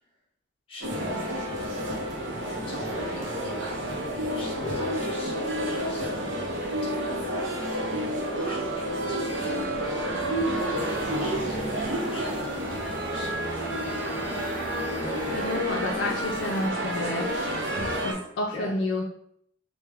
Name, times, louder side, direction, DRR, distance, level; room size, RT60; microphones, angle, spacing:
voice 1, 0.7-1.5 2.3-3.5 4.3-6.1 6.8-10.6 11.2-13.9 15.2-16.7 18.5-18.7, left 1 dB, 30° left, -3 dB, 1.0 m, -42 dB
sound 1, 0.8-18.1, right 1 dB, 75° right, 0.7 m, -30 dB
sound 2, 10.7-16.7, right 2 dB, 10° right, 0.4 m, -39 dB
voice 2, 15.3-17.4 18.0-19.0, left 2 dB, 70° left, 0 dB, 0.4 m, -29 dB
3.4 x 2.2 x 3.3 m, 0.68 s
head